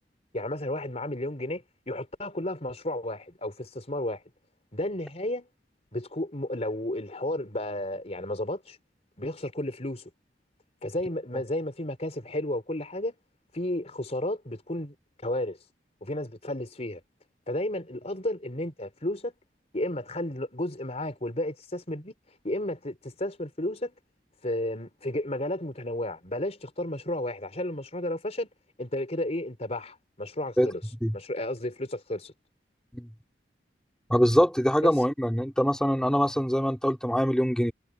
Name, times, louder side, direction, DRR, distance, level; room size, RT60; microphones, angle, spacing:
voice 1, 0.3-4.2 4.7-5.5 5.9-8.8 9.2-10.1 10.8-13.1 13.5-15.0 15.2-15.6 16.0-17.0 17.5-19.3 19.7-22.1 22.4-23.9 24.4-28.5 28.8-30.8 31.1-32.3 34.8-34.9, left 1 dB, 40° left, 4.2 m, -32 dB
voice 2, 34.1-37.7, equal, 5° left, 3.0 m, -23 dB
head